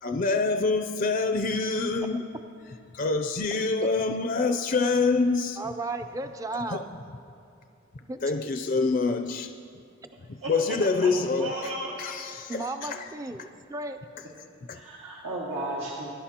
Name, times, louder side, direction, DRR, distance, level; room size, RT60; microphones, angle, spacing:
voice 1, 0.0-2.2 2.9-5.6 6.7-6.9 8.2-9.6 10.5-11.7 12.0-13.1 14.7-14.8, left 3 dB, 45° left, 0.4 m, -26 dB
voice 2, 5.6-6.9 8.0-8.2 12.5-14.0, right 2 dB, 15° right, 0.4 m, -34 dB
voice 3, 10.4-11.1 11.4-11.9 14.7-16.1, right 2 dB, 90° right, 1.8 m, -34 dB
23.0 x 11.0 x 2.9 m
head